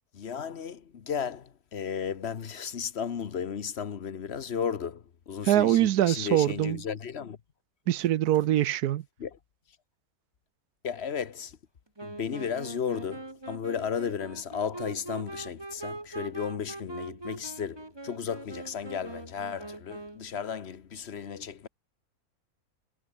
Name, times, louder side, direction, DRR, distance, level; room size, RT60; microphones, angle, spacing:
voice 1, 0.1-7.4 9.2-9.3 10.8-11.6 12.0-21.7, left 7 dB, 50° left, 1.2 m, -34 dB
voice 2, 5.4-6.8 7.9-9.0, right 13 dB, 85° right, 1.3 m, -23 dB
Wind instrument woodwind instrument, 12.0-20.4, right 2 dB, 15° right, 1.7 m, -42 dB
omnidirectional pair, 1.6 m